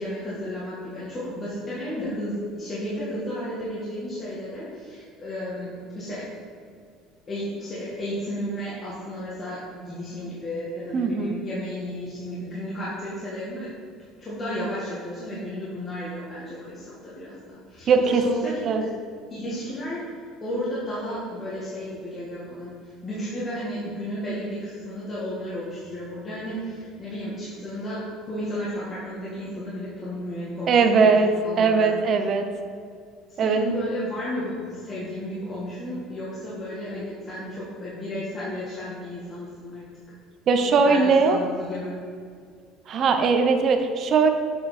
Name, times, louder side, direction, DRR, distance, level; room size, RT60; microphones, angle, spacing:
voice 1, 0.0-6.3 7.3-13.7 14.2-18.9 19.3-20.0 20.4-22.7 23.0-31.1 31.4-31.9 33.4-39.9 40.8-42.0, equal, 35° left, -9 dB, 2.0 m, -33 dB
voice 2, 10.9-11.4 17.9-18.2 18.6-18.8 30.7-31.3 31.6-32.5 33.4-33.6 40.5-41.4 42.9-44.3, right 5 dB, 50° right, 6 dB, 0.8 m, -20 dB
7.6 x 5.1 x 4.3 m, 2.2 s
supercardioid pair, 105°, 0 cm